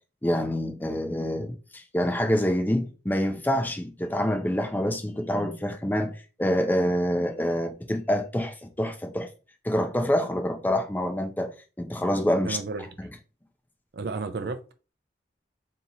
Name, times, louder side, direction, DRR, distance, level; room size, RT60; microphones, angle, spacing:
voice 1, 0.2-6.1 6.4-9.3 9.6-12.6 13.0-13.1, equal, 10° left, 0.5 m, -26 dB
voice 2, 12.4-12.9 13.9-14.7, right 4 dB, 60° right, 0.4 m, -32 dB
2.9 x 2.8 x 3.9 m
head